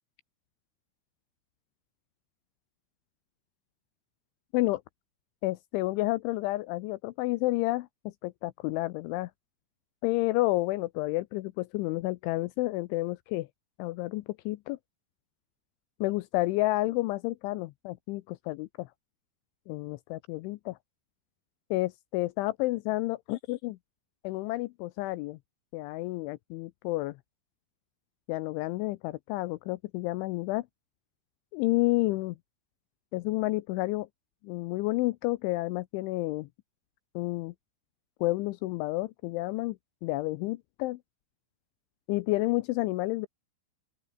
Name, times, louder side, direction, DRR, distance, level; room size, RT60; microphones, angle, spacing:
voice 1, 5.4-9.3 10.0-13.5 13.8-14.8 16.0-18.9 19.7-20.8 21.7-23.8 24.2-25.4 25.7-27.2 28.3-30.7 31.5-32.4 33.1-34.1 34.4-36.5 37.2-37.5 38.2-39.8 40.0-41.0 42.1-43.3, left 19 dB, 80° left, 3.0 m, -30 dB
open air
omnidirectional pair, 5.7 m